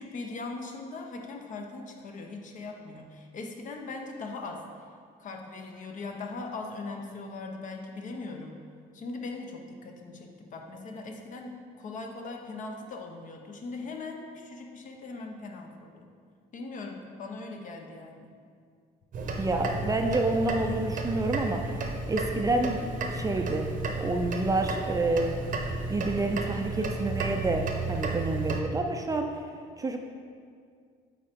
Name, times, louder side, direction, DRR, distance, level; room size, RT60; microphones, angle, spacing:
voice 1, 0.0-4.6 5.2-8.6 8.9-16.1 16.5-18.3, left 3 dB, 50° left, 3 dB, 0.8 m, -40 dB
sound 1, 19.1-28.6, right 3 dB, 50° right, 0.8 m, -33 dB
voice 2, 19.4-21.6 22.0-23.7 23.9-25.4 25.9-29.3 29.8-30.0, right 2 dB, 20° right, 4 dB, 0.4 m, -28 dB
8.4 x 3.9 x 3.6 m, 2.1 s
cardioid pair, 110°, 17 cm